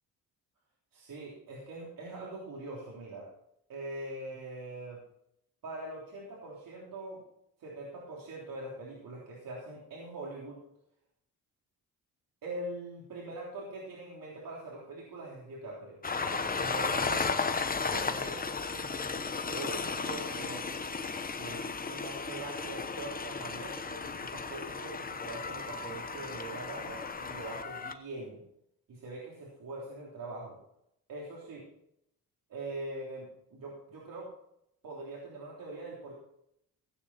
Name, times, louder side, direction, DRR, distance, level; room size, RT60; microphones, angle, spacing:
voice 1, 0.9-3.3 3.7-5.0 5.6-7.2 7.6-10.6 12.4-16.0 16.6-17.6 17.9-18.4 18.7-19.1 19.5-20.8 21.4-28.4 28.9-30.6 31.1-31.7 32.5-34.3 34.8-36.1, right 2 dB, 65° right, -3 dB, 3.6 m, -42 dB
Train, 16.0-27.9, left 4 dB, 25° left, 1.0 m, -35 dB
16.0 x 8.9 x 4.3 m, 0.76 s
cardioid pair, 110°, 36 cm